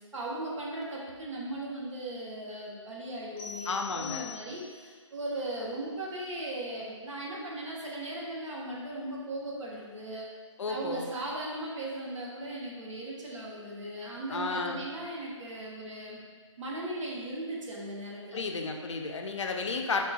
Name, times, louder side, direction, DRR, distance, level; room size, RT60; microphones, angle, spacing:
voice 1, 0.1-10.3 10.7-16.2 16.6-18.4, right 1 dB, 70° right, -4 dB, 0.9 m, -38 dB
sound 1, 3.4-4.9, left 8 dB, 10° left, 0.7 m, -43 dB
voice 2, 3.7-4.3 10.6-11.1 14.3-14.9 18.3-20.0, left 4 dB, 65° left, 3 dB, 0.4 m, -32 dB
3.9 x 2.2 x 2.3 m, 1.5 s
figure-of-eight pair, 155°, 16 cm